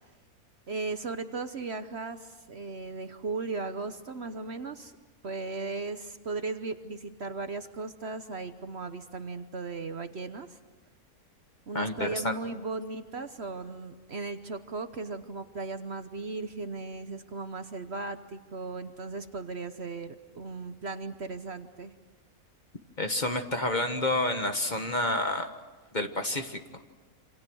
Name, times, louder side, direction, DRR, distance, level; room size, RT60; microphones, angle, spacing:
voice 1, 0.7-4.9 5.2-10.6 11.7-21.9, right 3 dB, 50° right, 9 dB, 1.2 m, -37 dB
voice 2, 11.7-12.3 23.0-25.5 25.9-26.6, left 2 dB, 30° left, 6 dB, 1.4 m, -29 dB
27.5 x 27.0 x 6.3 m, 1.2 s
omnidirectional pair, 1.5 m